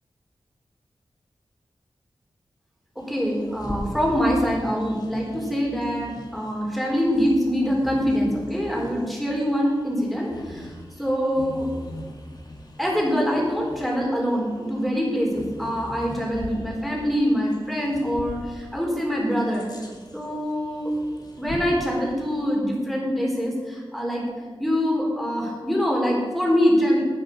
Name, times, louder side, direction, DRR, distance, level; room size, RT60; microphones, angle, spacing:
Bird vocalization bird call bird song, 3.0-22.4, equal, 45° left, 2.3 m, -41 dB
voice 1, 3.0-10.7 11.0-11.7 12.8-19.7 20.1-20.9 21.4-24.2 24.6-27.0, equal, ahead, -2 dB, 4.2 m, -24 dB
12.0 x 9.2 x 5.5 m, 1.5 s
wide cardioid pair, 75°, 9 cm